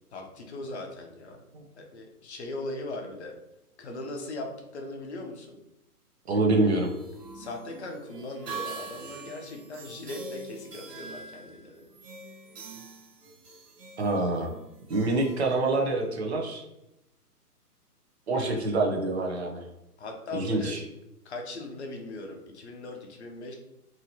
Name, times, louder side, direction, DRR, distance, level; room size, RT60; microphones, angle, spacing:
voice 1, 0.1-1.4 1.8-3.3 3.8-5.6 7.3-11.8 18.3-18.6 20.0-20.8 21.2-23.5, left 2 dB, 45° left, 2 dB, 0.6 m, -39 dB
voice 2, 6.3-6.9 14.0-14.5 14.9-16.6 18.3-19.6 20.3-20.8, right 2 dB, 45° right, 2 dB, 0.6 m, -26 dB
sound 1, 6.5-16.1, right 4 dB, 80° right, 1.2 m, -44 dB
2.8 x 2.7 x 2.7 m, 0.87 s
hypercardioid pair, 150°, 47 cm